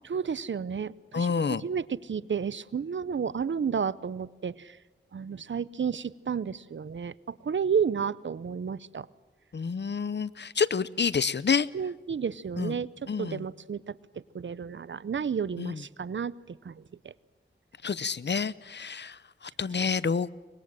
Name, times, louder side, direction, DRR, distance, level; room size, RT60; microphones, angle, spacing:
voice 1, 0.1-4.8 5.1-9.1 11.7-17.1, right 6 dB, 75° right, 19 dB, 0.7 m, -32 dB
voice 2, 1.1-1.6 9.5-11.7 12.6-12.7 13.1-13.4 15.6-15.8 17.8-20.3, left 5 dB, 65° left, 18 dB, 0.7 m, -28 dB
24.5 x 21.5 x 7.6 m, 1.3 s
cardioid pair, 45°, 19 cm